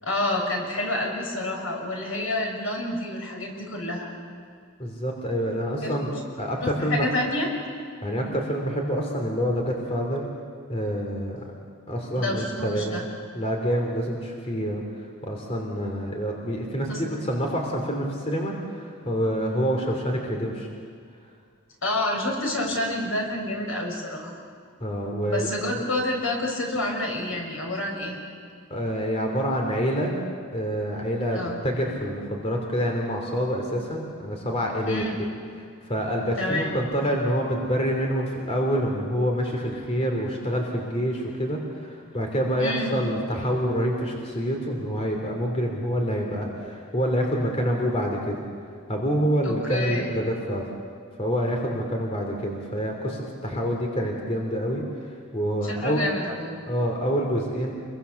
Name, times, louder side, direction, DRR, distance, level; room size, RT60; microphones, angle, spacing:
voice 1, 0.0-4.1 5.8-5.9 6.6-7.5 12.1-13.0 16.9-17.0 21.8-24.3 25.3-28.2 31.3-31.6 34.9-35.2 36.4-36.7 42.6-42.9 49.4-50.1 55.6-56.6, left 1 dB, 75° left, 0 dB, 6.6 m, -28 dB
voice 2, 4.8-6.1 6.4-7.0 8.0-10.2 10.7-11.4 11.9-13.0 13.3-20.7 24.8-25.5 28.7-30.1 30.5-35.0 35.9-48.4 48.9-50.6 51.2-54.8 55.3-56.0 56.7-57.7, equal, 30° left, 0 dB, 3.2 m, -27 dB
29.0 x 23.0 x 7.1 m, 2.2 s
head